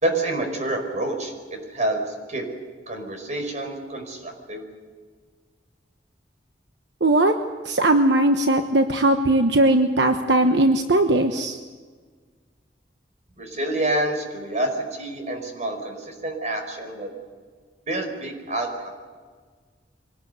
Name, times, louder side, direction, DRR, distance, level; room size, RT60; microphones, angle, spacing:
voice 1, 0.0-2.4 2.9-4.7 13.4-17.1 17.9-18.9, right 1 dB, 45° right, 4 dB, 5.2 m, -28 dB
voice 2, 7.0-7.3 7.6-11.6, right 1 dB, 75° right, 6 dB, 1.2 m, -19 dB
24.5 x 18.5 x 8.2 m, 1.5 s
head